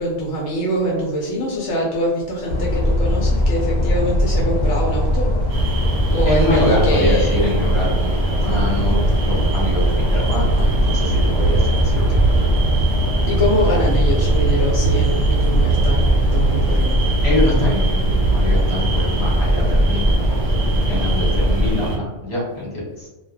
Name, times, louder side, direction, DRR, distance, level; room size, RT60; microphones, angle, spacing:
voice 1, 0.0-5.3 6.0-7.4 13.3-17.1, equal, 75° left, -3 dB, 0.9 m, -23 dB
sound 1, 2.5-21.7, equal, 60° left, 0.5 m, -20 dB
sound 2, 5.5-22.0, right 3 dB, 65° right, 0.8 m, -22 dB
voice 2, 6.2-12.5 17.2-20.4 20.9-23.1, left 1 dB, 25° left, -6 dB, 1.2 m, -25 dB
2.3 x 2.2 x 3.1 m, 1.1 s
omnidirectional pair, 1.2 m